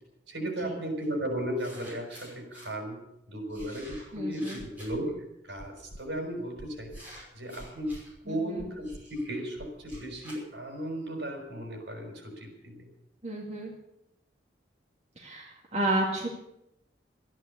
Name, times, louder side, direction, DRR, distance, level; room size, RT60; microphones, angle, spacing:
voice 1, 0.3-7.0 7.3-12.9, right 1 dB, 70° right, 2 dB, 5.6 m, -35 dB
sound 1, 1.0-1.1 1.6-2.7 3.5-5.1 6.0-6.3 6.9-8.1 8.8-11.1, equal, 10° right, 6.0 m, -50 dB
sound 2, 3.6-4.0 4.6-5.0 5.6-6.0 6.6-7.0 7.6-8.0 8.6-9.0 9.6-10.0 10.6-10.7, equal, 75° left, 1.4 m, -46 dB
voice 2, 4.1-4.6 8.3-8.6 13.2-13.7 15.2-16.3, right 1 dB, 35° right, -3 dB, 2.3 m, -32 dB
13.5 x 11.0 x 8.3 m, 0.84 s
head